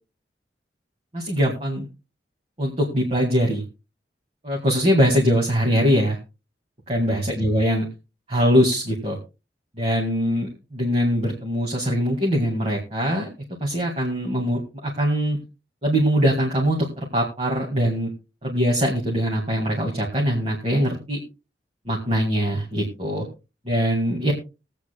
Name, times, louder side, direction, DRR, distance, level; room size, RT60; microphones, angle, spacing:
voice 1, 1.1-1.9 2.6-3.6 4.4-6.2 6.9-7.9 8.3-9.2 9.8-13.3 13.6-15.4 15.8-18.1 18.4-21.2 21.9-23.3 23.7-24.3, equal, 35° right, -2 dB, 2.1 m, -22 dB
22.0 x 8.5 x 2.2 m, 0.29 s
head